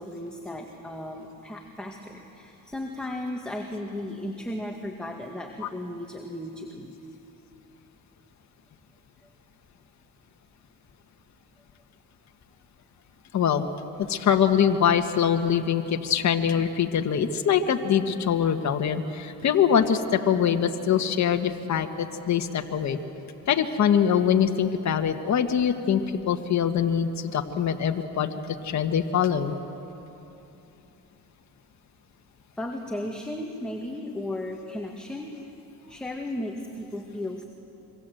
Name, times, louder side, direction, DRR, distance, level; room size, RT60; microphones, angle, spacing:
voice 1, 0.0-6.9 32.5-35.4 35.9-37.4, left 1 dB, ahead, 1 dB, 2.0 m, -35 dB
voice 2, 13.3-13.6 14.0-23.0 23.5-28.3 28.6-29.5, left 8 dB, 45° left, 5 dB, 1.4 m, -23 dB
26.5 x 24.0 x 7.9 m, 2.9 s
cardioid pair, 100°, 38 cm